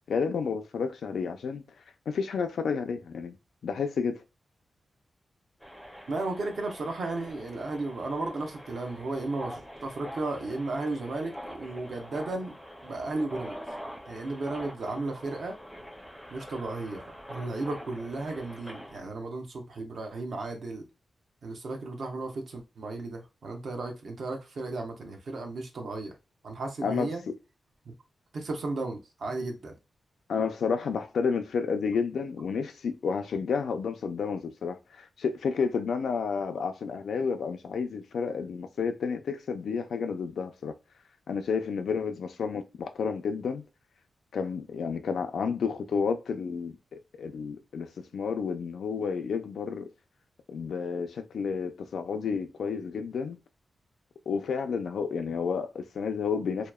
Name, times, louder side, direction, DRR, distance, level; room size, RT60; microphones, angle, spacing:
voice 1, 0.1-1.6 2.1-3.4 3.6-4.2 26.8-27.1 30.3-40.7 41.3-43.6 44.3-49.9 50.5-53.4 54.3-56.7, left 5 dB, 85° left, 0.4 m, -31 dB
sound 1, 5.6-19.0, equal, ahead, 0.5 m, -44 dB
voice 2, 6.1-12.6 12.8-13.6 14.1-15.6 16.3-17.0 17.3-20.9 21.4-26.2 26.4-27.2 27.9-28.0 28.3-29.8, right 2 dB, 60° right, 0.7 m, -34 dB
2.8 x 2.0 x 2.2 m
wide cardioid pair, 150°, 0 cm